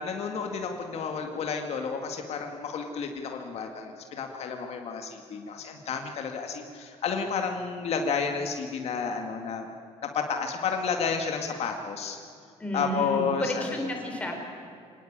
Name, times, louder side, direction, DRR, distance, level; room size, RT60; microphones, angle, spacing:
voice 1, 0.0-9.7 10.1-12.2 12.7-13.8, left 5 dB, 60° left, 4 dB, 2.0 m, -31 dB
voice 2, 12.6-14.3, equal, 10° left, 1 dB, 4.4 m, -32 dB
25.5 x 19.0 x 8.9 m, 2.5 s
cardioid pair, 165°, 12 cm